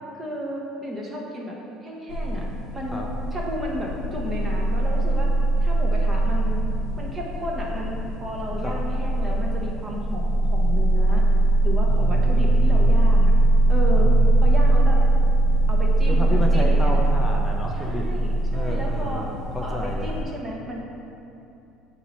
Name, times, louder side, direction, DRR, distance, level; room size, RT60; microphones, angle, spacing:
voice 1, 0.1-2.4 2.7-3.0 3.3-5.3 5.6-6.7 7.0-11.3 11.6-13.4 13.7-14.1 14.4-15.0 15.7-16.9 17.7-19.3 19.6-20.8, equal, 15° right, -2 dB, 0.7 m, -33 dB
sound 1, 2.1-20.2, right 2 dB, 50° left, 0.6 m, -21 dB
voice 2, 11.9-13.1 14.0-14.5 16.1-20.1, left 1 dB, 5° left, -1 dB, 0.3 m, -31 dB
8.7 x 3.0 x 4.1 m, 2.7 s
cardioid pair, 180°, 0 cm